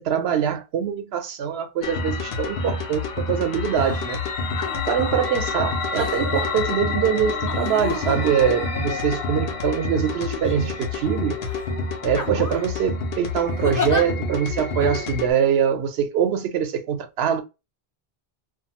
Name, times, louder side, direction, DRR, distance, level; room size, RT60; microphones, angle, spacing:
voice 1, 0.0-4.2 4.9-11.4 12.0-17.4, right 8 dB, 80° right, 0.8 m, -23 dB
sound 1, 1.8-15.3, left 4 dB, 75° left, 0.8 m, -28 dB
sound 2, 3.8-4.0 4.5-5.2 5.9-6.5 7.5-9.5 10.3-11.0 11.5-11.7 12.1-12.7 13.6-14.0 14.8-14.9, left 4 dB, 25° left, 0.4 m, -32 dB
2.6 x 2.3 x 2.8 m
omnidirectional pair, 1.1 m